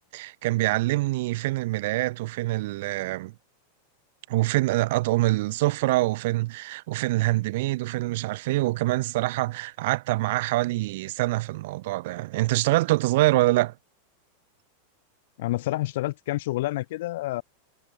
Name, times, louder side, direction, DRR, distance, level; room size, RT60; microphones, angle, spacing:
voice 1, 0.1-3.3 4.3-13.7, right 19 dB, 50° right, 0.4 m, -25 dB
voice 2, 15.4-17.4, left 17 dB, 55° left, 0.6 m, -28 dB
figure-of-eight pair, 90°, 0 cm